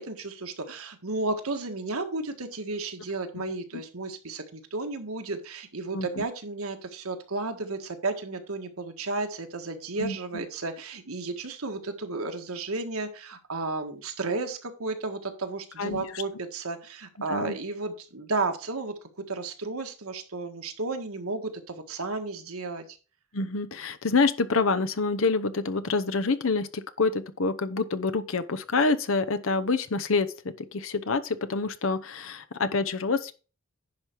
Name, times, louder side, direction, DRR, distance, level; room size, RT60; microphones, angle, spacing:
voice 1, 0.0-18.9 19.3-23.0, right 3 dB, 85° right, 1.6 m, -33 dB
voice 2, 5.9-6.2 10.0-10.4 15.8-16.0 17.3-17.6 23.3-33.3, left 4 dB, 70° left, 0.8 m, -27 dB
10.5 x 5.3 x 4.6 m
head